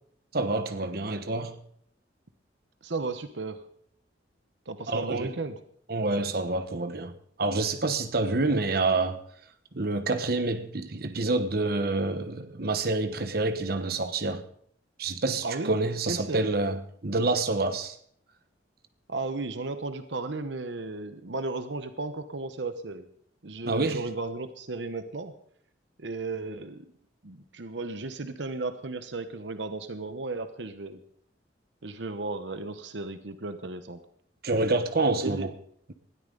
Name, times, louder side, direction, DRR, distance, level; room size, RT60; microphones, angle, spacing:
voice 1, 0.3-1.5 4.9-5.3 5.9-7.1 7.4-9.2 9.7-14.4 15.0-17.9 23.6-24.0 34.4-35.5, right 2 dB, 55° right, 1.1 m, -27 dB
voice 2, 2.8-3.6 4.7-5.6 15.4-15.8 16.1-16.5 19.1-23.1 23.4-25.3 26.0-26.9 27.2-31.0 31.8-34.0 35.2-35.5, right 3 dB, 75° right, 1.0 m, -34 dB
20.0 x 13.0 x 3.9 m
head